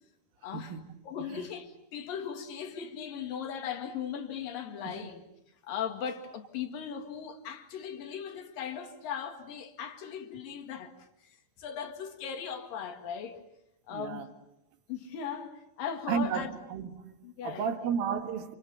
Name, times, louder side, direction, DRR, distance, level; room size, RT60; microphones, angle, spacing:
voice 1, 0.4-0.8 1.0-5.2 5.6-10.9 11.2-13.4 13.9-14.3 14.9-16.5 17.2-17.9, left 7 dB, 55° left, 3.2 m, -38 dB
voice 2, 13.9-14.3 16.1-17.2 17.4-18.6, right 7 dB, 60° right, 2.9 m, -33 dB
29.5 x 28.0 x 7.0 m
omnidirectional pair, 5.7 m